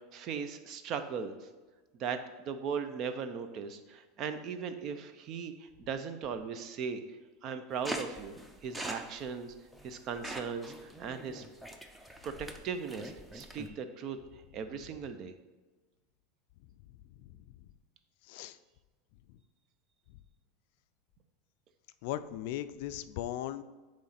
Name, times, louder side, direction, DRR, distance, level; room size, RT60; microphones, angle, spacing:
voice 1, 0.0-1.5 2.0-7.0 7.4-8.4 8.6-9.5 9.8-11.4 12.2-14.2 14.5-15.3, right 6 dB, 45° right, 10 dB, 0.6 m, -38 dB
sound 1, 7.8-13.7, equal, 10° right, 0.6 m, -43 dB
voice 2, 17.1-17.7 18.2-18.6 19.3-19.4 22.0-23.6, left 12 dB, 65° left, 13 dB, 0.3 m, -39 dB
8.5 x 3.2 x 4.2 m, 1.3 s
supercardioid pair, 110°, 0 cm